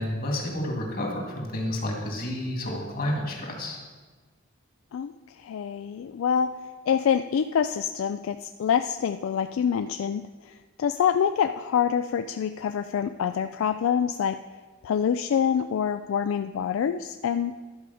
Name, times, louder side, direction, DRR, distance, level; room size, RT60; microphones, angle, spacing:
voice 1, 0.0-3.8, left 1 dB, 45° left, 0 dB, 2.1 m, -30 dB
voice 2, 4.9-6.6 6.9-14.4 14.8-17.5, left 7 dB, 75° left, 10 dB, 0.3 m, -26 dB
11.5 x 4.9 x 6.9 m, 1.4 s
head